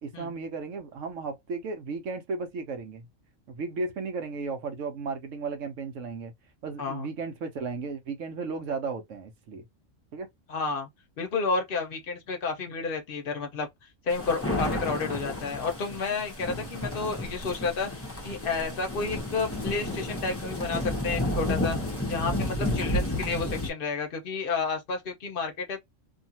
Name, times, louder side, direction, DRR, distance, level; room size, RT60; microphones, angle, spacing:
voice 1, 0.0-3.1 3.5-6.3 6.6-9.6 10.1-10.3 16.4-16.6, right 4 dB, 85° right, 1.1 m, -35 dB
voice 2, 10.5-10.9 11.2-13.7 14.0-21.8 22.1-25.8, left 4 dB, 50° left, 0.9 m, -31 dB
sound 1, 14.1-23.7, left 1 dB, 15° left, 0.7 m, -31 dB
2.7 x 2.4 x 2.8 m
omnidirectional pair, 1.3 m